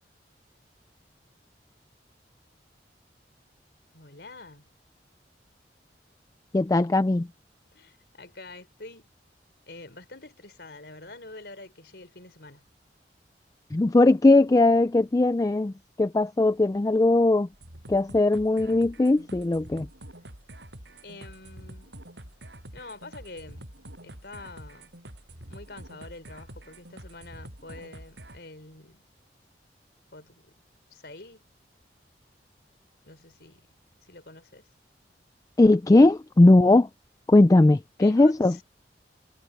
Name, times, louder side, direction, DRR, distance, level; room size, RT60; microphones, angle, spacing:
voice 1, 3.9-4.6 7.7-9.1 9.7-12.6 21.0-21.9 22.7-23.8 24.0-24.9 25.5-29.0 30.1-30.5 30.9-31.4 33.0-33.7 34.0-34.7 38.0-38.6, left 2 dB, 65° left, 4.5 m, -46 dB
voice 2, 6.5-7.3 13.7-15.7 16.0-17.5 17.9-19.9 35.6-36.9 37.3-38.5, left 2 dB, 20° left, 0.3 m, -19 dB
sound 1, 17.5-28.4, right 1 dB, 80° right, 7.6 m, -46 dB
head